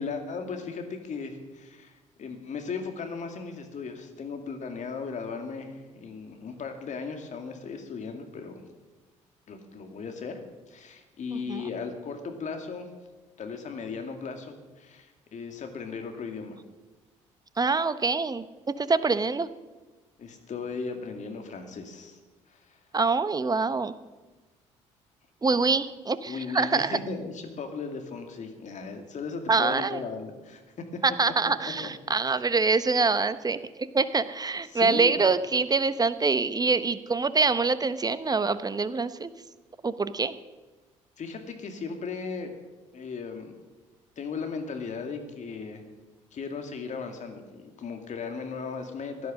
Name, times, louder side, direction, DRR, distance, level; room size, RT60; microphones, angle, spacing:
voice 1, 0.0-8.6 9.5-10.4 10.7-12.9 13.4-16.6 20.2-22.2 22.5-22.8 25.4-25.6 26.3-30.6 30.9-31.0 31.8-31.9 34.7-35.2 41.2-42.5 42.9-43.5 44.2-45.8 46.3-49.3, left 5 dB, 50° left, 5 dB, 2.5 m, -37 dB
voice 2, 17.6-19.5 22.9-23.9 25.4-27.0 29.5-30.0 31.0-39.3 39.8-40.4, right 4 dB, 25° right, 14 dB, 1.0 m, -25 dB
16.0 x 11.0 x 6.5 m, 1.2 s
hypercardioid pair, 50°, 16 cm